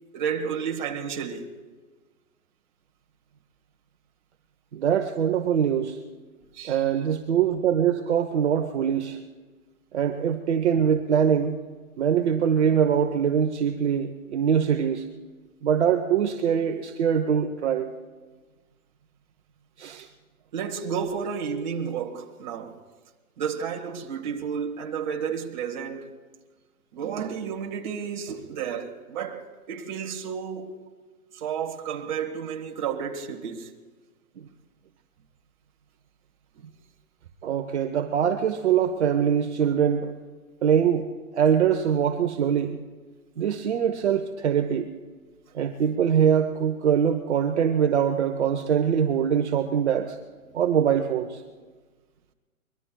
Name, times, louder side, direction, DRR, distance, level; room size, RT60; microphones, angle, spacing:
voice 1, 0.1-1.5 6.5-6.8 20.0-20.1 20.5-22.8 23.4-26.1 26.9-30.8 31.3-33.7 36.5-36.6, right 7 dB, 30° right, 1.4 m, -31 dB
voice 2, 4.7-6.0 6.6-9.2 9.9-11.6 12.0-15.0 15.6-17.9 19.8-20.1 34.4-34.5 37.4-40.1 40.6-41.1 41.3-42.8 43.4-44.9 45.5-50.2 50.5-51.4, right 8 dB, 50° right, 1.0 m, -23 dB
23.5 x 22.5 x 2.3 m
hypercardioid pair, 160°, 44 cm